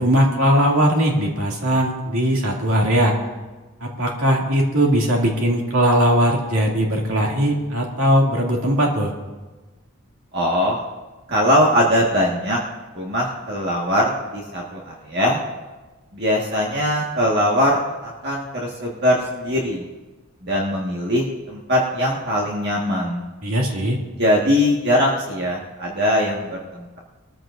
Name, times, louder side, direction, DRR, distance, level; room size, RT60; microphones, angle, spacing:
voice 1, 0.0-3.2 3.8-9.1 23.4-24.0, equal, 80° right, -1 dB, 2.5 m, -19 dB
voice 2, 10.3-10.8 11.3-12.6 13.0-15.4 16.1-19.8 20.4-23.2 24.2-27.0, equal, 50° right, -3 dB, 1.6 m, -21 dB
22.0 x 14.5 x 2.6 m, 1.2 s
head